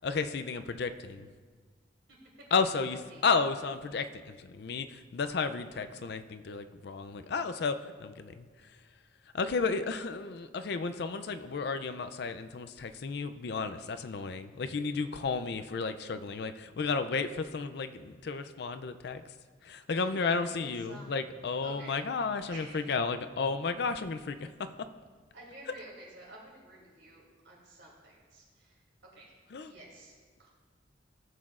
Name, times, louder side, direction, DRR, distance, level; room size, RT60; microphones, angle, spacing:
voice 1, 0.0-1.3 2.5-8.8 9.3-19.2 19.6-24.5 29.5-29.7, left 4 dB, 60° left, 10 dB, 0.4 m, -33 dB
voice 2, 2.9-3.2 20.0-21.3 21.6-22.0 22.5-22.8 25.3-28.8 29.1-30.5, right 1 dB, 70° right, -3 dB, 3.1 m, -51 dB
15.5 x 8.1 x 2.5 m, 1.5 s
head